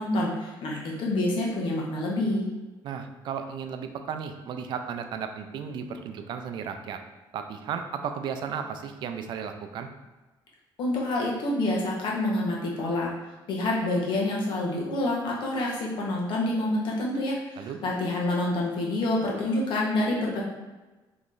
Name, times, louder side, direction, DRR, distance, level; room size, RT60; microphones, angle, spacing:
voice 1, 0.0-2.4 10.8-13.1 13.5-20.4, left 1 dB, 65° left, -2 dB, 0.9 m, -27 dB
voice 2, 2.8-7.0 7.3-9.9 17.6-17.8, right 7 dB, 65° right, 7 dB, 0.4 m, -34 dB
3.0 x 2.5 x 3.7 m, 1.1 s
cardioid pair, 120°, 9 cm